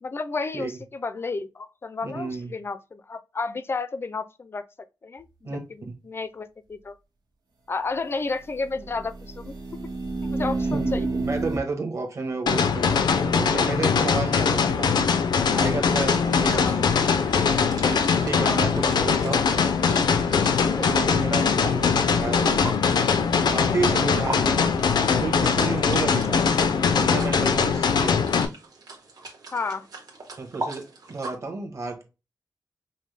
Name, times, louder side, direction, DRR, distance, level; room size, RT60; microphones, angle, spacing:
voice 1, 0.0-4.7 5.0-5.3 5.7-7.0 7.7-9.5 10.2-11.1 16.5-16.8 18.4-18.7 19.0-19.1 20.8-21.1 29.5-29.9, left 3 dB, 35° left, 0.4 m, -32 dB
voice 2, 2.0-2.5 5.4-5.6 5.9-6.0 10.7-15.1 15.5-17.0 17.8-19.4 20.8-22.6 23.4-24.7 25.2-26.5 26.9-28.2 30.4-32.0, right 3 dB, 45° right, 1.1 m, -31 dB
sound 1, 5.2-5.3 8.7-11.6, right 3 dB, 90° right, 1.3 m, -29 dB
sound 2, 12.5-28.5, left 6 dB, 90° left, 0.5 m, -22 dB
sound 3, 15.6-31.4, right 2 dB, 60° right, 1.3 m, -41 dB
5.3 x 2.1 x 3.3 m
wide cardioid pair, 160°, 7 cm